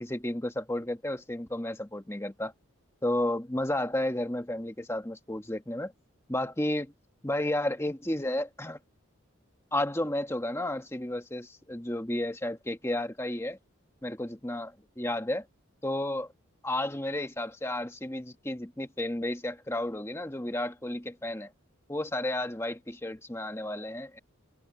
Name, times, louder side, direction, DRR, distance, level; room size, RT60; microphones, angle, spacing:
voice 1, 0.0-2.5 3.0-5.9 6.3-6.9 7.2-8.8 9.7-13.6 14.0-15.5 15.8-16.3 16.6-21.5 21.9-24.2, left 1 dB, 10° left, 1.3 m, -32 dB
open air
head